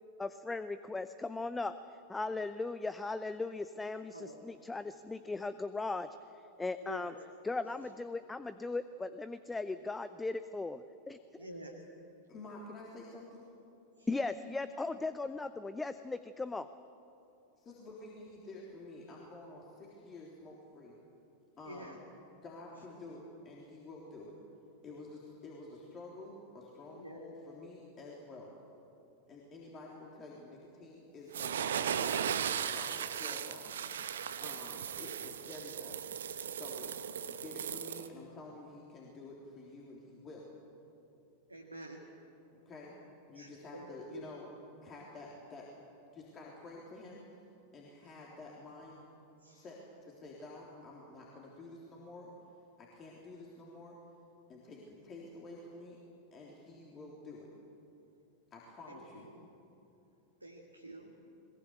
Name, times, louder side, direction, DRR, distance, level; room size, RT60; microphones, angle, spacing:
voice 1, 0.2-1.8 2.1-6.2 6.6-7.1 7.4-11.4 14.1-16.7, left 3 dB, 10° left, 12 dB, 0.6 m, -38 dB
voice 2, 6.8-7.1 11.4-11.7 14.0-14.1 21.6-22.0 26.9-27.2 41.5-42.0 43.3-44.2 48.0-48.1 49.4-49.6 58.9-59.5 60.4-61.1, right 1 dB, 85° right, 0 dB, 2.1 m, -48 dB
voice 3, 12.3-13.5 17.6-20.9 21.6-22.0 22.4-24.3 24.8-28.5 29.3-32.0 32.5-33.7 34.4-36.1 36.5-36.9 37.2-40.5 42.7-43.0 43.3-44.5 44.8-45.6 46.1-47.3 47.7-49.0 49.5-52.3 52.8-54.0 54.5-56.0 56.3-57.5 58.5-59.3, left 2 dB, 25° left, -3 dB, 3.6 m, -50 dB
sound 1, 31.3-38.1, right 8 dB, 65° right, 1.0 m, -37 dB
22.0 x 20.5 x 8.3 m, 2.8 s
figure-of-eight pair, 90°, 0 cm